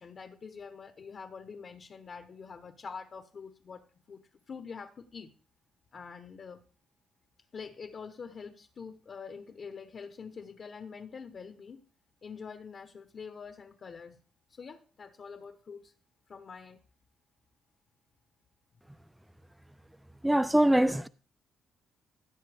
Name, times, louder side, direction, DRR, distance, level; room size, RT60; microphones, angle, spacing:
voice 1, 0.0-5.3 5.9-6.6 7.5-11.8 12.2-14.2 14.5-15.9 16.3-16.8, left 5 dB, 45° left, 1.0 m, -45 dB
voice 2, 20.2-21.1, right 1 dB, 5° right, 0.4 m, -23 dB
15.5 x 7.4 x 3.5 m
cardioid pair, 90°, 0 cm